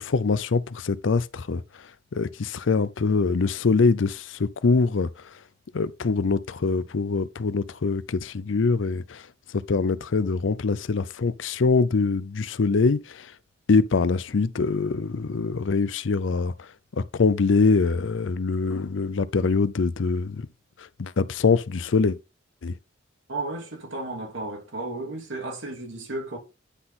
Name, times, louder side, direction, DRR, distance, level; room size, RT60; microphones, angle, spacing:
voice 1, 0.0-1.6 2.1-5.1 5.7-9.2 9.5-13.3 13.7-16.5 17.0-20.5 21.0-22.2 22.6-22.7, left 4 dB, 75° left, 0.5 m, -23 dB
voice 2, 23.3-26.4, right 2 dB, 80° right, 2.9 m, -33 dB
9.9 x 3.8 x 4.1 m
head